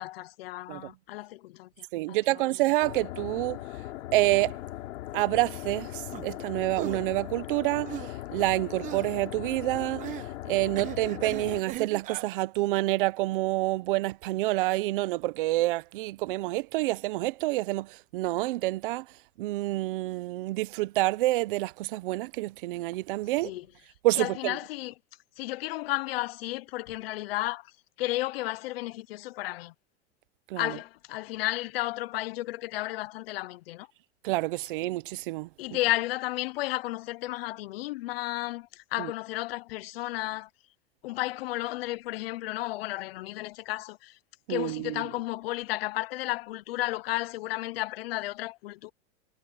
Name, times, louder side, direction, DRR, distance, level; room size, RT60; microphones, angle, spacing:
voice 1, 0.0-2.2 23.4-23.7 24.2-24.9 25.4-27.7 28.0-29.7 30.6-33.9 35.6-40.5 41.0-44.2 44.5-48.9, left 17 dB, 55° left, 0.5 m, -33 dB
voice 2, 1.9-3.6 4.1-4.6 5.1-8.0 8.3-10.0 10.4-19.1 19.4-23.5 24.0-24.6 30.5-30.8 34.2-35.5 39.0-39.1 44.5-45.0, right 19 dB, 45° right, 0.6 m, -28 dB
sound 1, 2.8-11.6, left 15 dB, 85° left, 3.0 m, -39 dB
sound 2, 6.1-6.2 6.7-7.0 7.9-8.2 8.8-9.1 10.0-10.3 10.7-12.2, right 13 dB, 20° right, 0.9 m, -38 dB
supercardioid pair, 175°, 37 cm